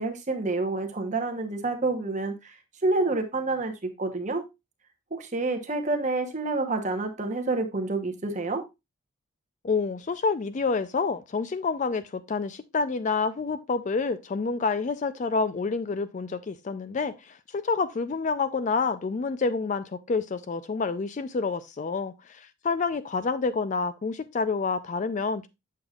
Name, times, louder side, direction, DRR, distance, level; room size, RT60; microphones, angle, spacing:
voice 1, 0.0-2.5 2.8-3.7 4.0-4.4 5.1-8.6, right 3 dB, 35° right, 0.9 m, -28 dB
voice 2, 9.6-25.5, left 4 dB, 35° left, 0.3 m, -28 dB
7.9 x 6.5 x 2.3 m
head